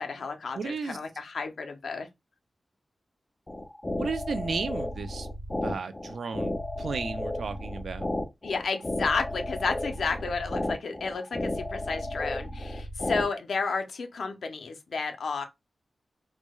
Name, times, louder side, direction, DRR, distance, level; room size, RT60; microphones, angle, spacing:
voice 1, 0.0-2.1 8.4-15.4, left 4 dB, 90° left, 0.5 m, -32 dB
voice 2, 0.5-1.0 4.0-5.3 5.6-8.1, right 4 dB, 80° right, 0.4 m, -34 dB
sound 1, 3.5-13.3, left 1 dB, 20° left, 0.4 m, -33 dB
4.5 x 2.0 x 2.2 m
wide cardioid pair, 155°, 0 cm